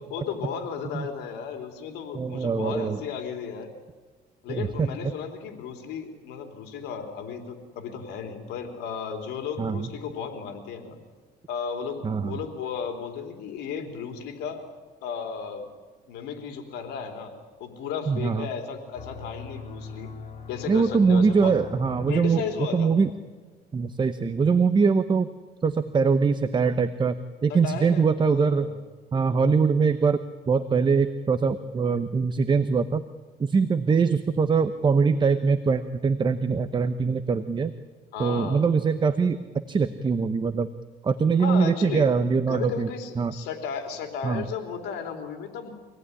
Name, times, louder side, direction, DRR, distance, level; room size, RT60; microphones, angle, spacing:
voice 1, 0.1-3.7 4.4-11.0 11.5-14.6 15.0-15.7 16.1-17.3 17.6-20.1 20.5-21.6 22.1-23.0 27.5-28.7 38.1-38.6 41.4-42.0 42.5-45.7, left 7 dB, 85° left, 5 dB, 3.6 m, -34 dB
voice 2, 2.1-3.0 4.5-4.9 9.6-9.9 12.0-12.4 18.1-18.5 20.7-23.1 23.7-25.3 25.6-28.7 29.1-33.0 33.4-37.7 38.2-40.7 41.0-42.9 43.2-43.3 44.2-44.4, right 5 dB, 25° right, 11 dB, 1.0 m, -23 dB
sound 1, 19.0-22.9, left 5 dB, 40° left, 3.5 m, -42 dB
25.5 x 18.0 x 9.9 m, 1.4 s
cardioid pair, 110°, 17 cm